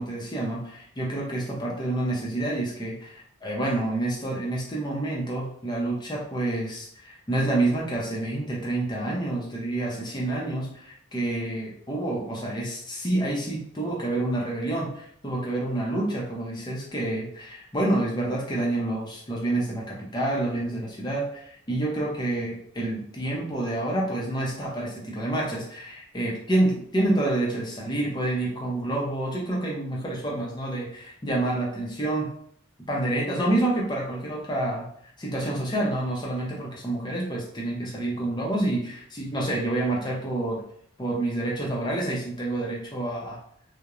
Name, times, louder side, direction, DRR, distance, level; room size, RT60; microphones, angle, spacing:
voice 1, 0.0-32.3 32.9-34.9 35.2-40.6 41.0-43.4, right 1 dB, 20° left, -3 dB, 0.5 m, -28 dB
2.9 x 2.0 x 2.4 m, 0.66 s
head